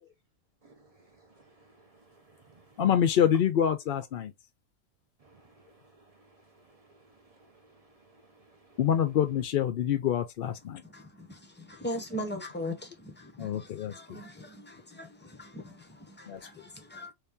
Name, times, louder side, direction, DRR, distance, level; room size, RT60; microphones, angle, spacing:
voice 1, 0.6-2.8 5.2-8.8, right 3 dB, 50° right, 0.4 m, -60 dB
voice 2, 2.8-4.3 8.8-10.8 13.4-14.2 16.3-16.4, left 9 dB, 65° left, 0.5 m, -26 dB
voice 3, 10.8-17.1, left 1 dB, 15° left, 0.4 m, -40 dB
3.2 x 2.8 x 3.5 m
omnidirectional pair, 1.4 m